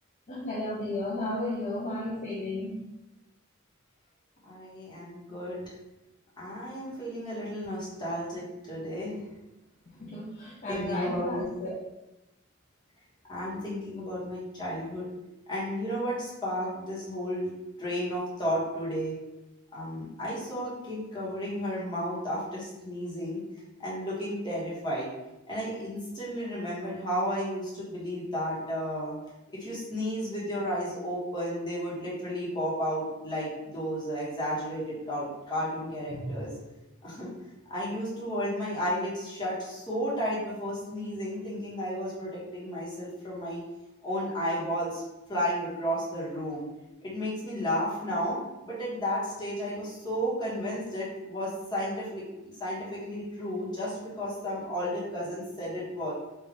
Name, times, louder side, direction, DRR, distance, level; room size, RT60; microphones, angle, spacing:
voice 1, 0.3-2.8 10.0-11.7 36.1-36.4, left 1 dB, 40° left, -6 dB, 0.6 m, -33 dB
voice 2, 4.4-5.7 6.4-9.3 10.7-11.5 13.3-15.1 15.5-17.5 17.8-19.2 19.7-23.4 23.8-25.1 25.5-29.1 29.6-36.5 37.0-37.3 37.7-43.6 44.0-45.0 45.3-46.7 47.0-48.4 48.6-56.1, equal, 20° left, -7 dB, 1.3 m, -33 dB
3.5 x 2.6 x 3.7 m, 0.97 s
head